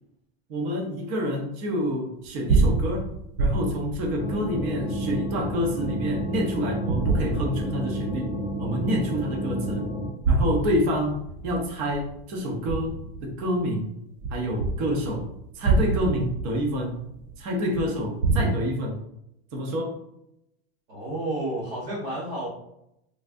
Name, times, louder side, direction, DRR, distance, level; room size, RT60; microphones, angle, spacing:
voice 1, 0.5-3.1 3.4-8.3 8.6-9.8 10.3-11.2 11.4-13.9 14.3-15.2 15.6-17.0 17.4-19.0 19.5-20.0, equal, 25° right, 1 dB, 0.5 m, -28 dB
sound 1, 2.2-6.3 6.9-8.2 8.7-8.8 10.0-13.6 14.2-18.5, right 3 dB, 85° right, 0.6 m, -27 dB
sound 2, 4.2-10.1, equal, 30° left, 0.4 m, -31 dB
voice 2, 20.9-22.5, right 1 dB, 60° right, -7 dB, 1.4 m, -31 dB
3.2 x 2.4 x 2.5 m, 0.80 s
supercardioid pair, 170°, 32 cm